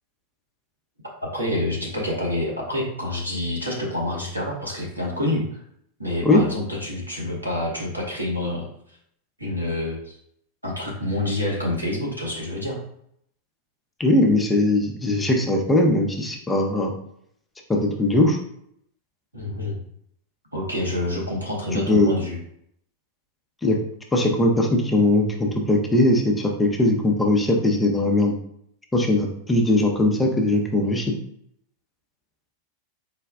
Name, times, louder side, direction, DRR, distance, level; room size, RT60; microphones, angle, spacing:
voice 1, 1.3-5.5 6.0-8.7 9.4-10.1 10.6-12.8 19.3-19.8 20.5-22.4, left 1 dB, 90° right, -3 dB, 1.2 m, -27 dB
voice 2, 14.0-16.9 17.7-18.4 21.7-22.1 23.6-23.8 24.1-28.4 28.9-31.1, left 1 dB, 10° left, 1 dB, 0.7 m, -20 dB
4.1 x 2.2 x 3.4 m, 0.70 s
figure-of-eight pair, 90°, 0 cm